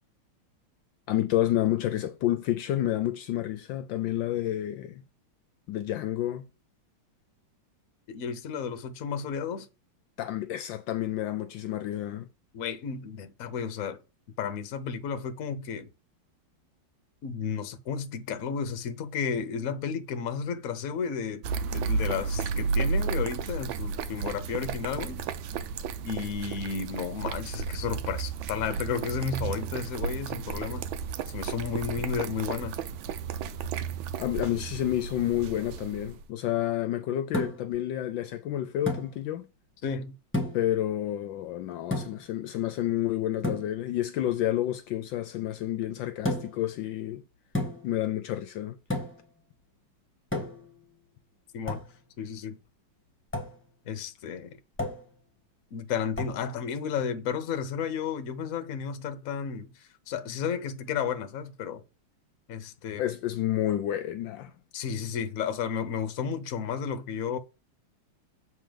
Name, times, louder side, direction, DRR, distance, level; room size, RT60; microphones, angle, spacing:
voice 1, 1.1-5.0 5.7-6.4 10.2-12.3 34.2-39.5 40.5-47.2 47.8-48.8 63.0-64.5, left 13 dB, 75° left, 1.2 m, -29 dB
voice 2, 8.1-9.7 12.5-14.0 14.4-15.9 17.2-21.4 21.7-25.2 26.0-30.9 31.3-32.7 39.8-40.1 51.5-51.8 52.2-52.6 53.9-54.5 55.7-61.8 62.5-63.0 64.7-67.4, left 6 dB, 55° left, 1.0 m, -32 dB
sound 1, 21.4-36.2, right 5 dB, 75° right, 1.4 m, -33 dB
sound 2, 37.3-37.8 38.9-39.1 40.3-40.7 41.9-42.3 43.4-43.7 46.2-46.6 47.5-48.0 48.9-49.3 50.3-50.7 51.7-51.9 53.3-53.6 54.8-55.1 56.1-56.4, left 1 dB, 5° left, 1.4 m, -31 dB
7.5 x 3.5 x 5.1 m
omnidirectional pair, 2.3 m